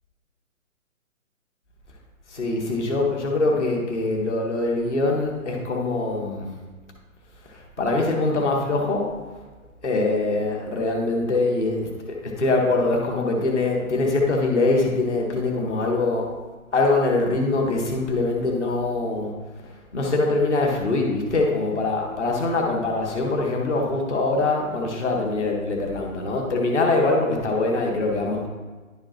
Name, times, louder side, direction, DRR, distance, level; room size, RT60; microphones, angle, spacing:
voice 1, 2.3-6.5 7.5-9.1 9.8-16.3 16.7-19.3 19.6-28.5, left 2 dB, 5° right, -9 dB, 0.5 m, -23 dB
10.0 x 4.9 x 3.0 m, 1.3 s
figure-of-eight pair, 140°, 42 cm